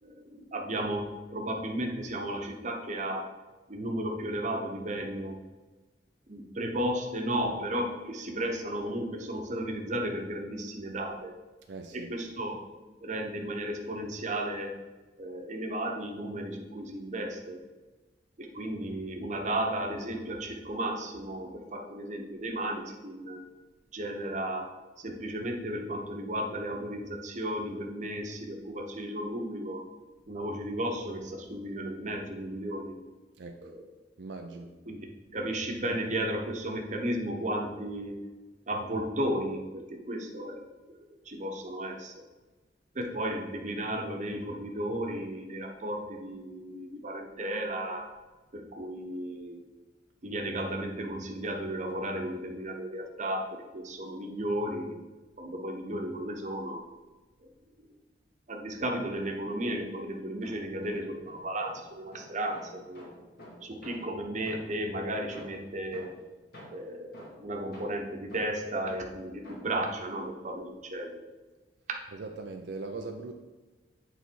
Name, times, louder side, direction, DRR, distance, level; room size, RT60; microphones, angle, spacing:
voice 1, 0.0-3.3 3.7-5.4 6.3-11.3 11.9-12.6 13.0-14.8 15.2-17.6 18.4-23.4 23.9-29.8 30.3-33.0 33.6-33.8 34.9-38.2 38.7-40.6 40.9-41.0 41.2-42.1 42.9-48.1 48.5-49.6 50.2-55.0 55.4-56.8 58.5-63.1 63.6-66.1 66.7-71.2, right 1 dB, 45° right, 2 dB, 1.0 m, -34 dB
voice 2, 11.7-12.1 33.4-33.7 34.2-34.8 72.1-73.3, right 3 dB, 75° right, 3 dB, 0.5 m, -40 dB
sound 1, 59.1-60.0 60.4-64.9 65.3-69.9, left 1 dB, 65° left, 2.0 m, -51 dB
8.2 x 4.1 x 4.6 m, 1.2 s
head